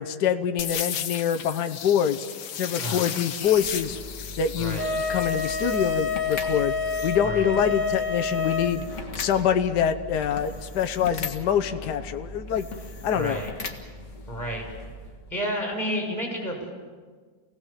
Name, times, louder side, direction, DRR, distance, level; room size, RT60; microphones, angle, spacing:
voice 1, 0.0-2.2 2.5-4.0 4.4-4.8 5.1-6.7 7.0-8.8 9.2-12.7 13.0-13.4, left 8 dB, 65° left, 8 dB, 1.5 m, -25 dB
sound 1, 0.6-7.2, left 8 dB, 85° left, 1.8 m, -35 dB
voice 2, 2.8-3.1 4.6-4.9 7.2-7.5 13.1-13.5 14.3-14.6 15.3-16.7, equal, 10° left, -1 dB, 6.9 m, -30 dB
sound 2, 3.4-15.4, left 2 dB, 40° left, 2.1 m, -39 dB
Wind instrument woodwind instrument, 4.8-8.7, left 5 dB, 40° right, 3.0 m, -28 dB
28.5 x 18.5 x 7.4 m, 1.5 s
omnidirectional pair, 2.0 m